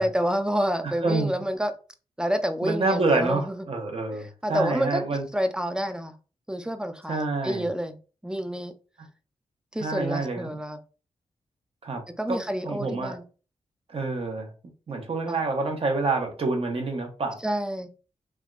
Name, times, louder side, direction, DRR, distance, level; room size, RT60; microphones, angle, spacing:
voice 1, 0.0-1.7 2.2-3.6 4.4-5.0 5.3-6.1 6.5-8.0 8.2-8.7 9.7-10.8 12.2-13.2 15.3-15.4 17.4-17.9, equal, 5° right, 0.4 m, -28 dB
voice 2, 0.8-1.3 2.6-5.2 7.1-7.7 9.8-10.6 11.8-12.0 12.3-13.2 13.9-14.5 14.9-17.4, right 3 dB, 55° right, 0.9 m, -27 dB
3.4 x 2.2 x 2.4 m
cardioid pair, 75°, 12 cm